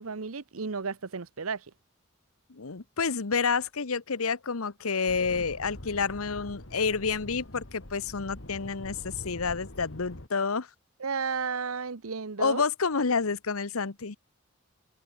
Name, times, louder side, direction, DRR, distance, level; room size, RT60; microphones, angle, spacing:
voice 1, 0.0-1.6 11.0-12.6, right 5 dB, 85° right, 0.9 m, -33 dB
voice 2, 2.5-10.7 12.4-14.2, left 5 dB, 85° left, 1.0 m, -29 dB
sound 1, 5.1-10.3, left 1 dB, 60° left, 2.6 m, -44 dB
head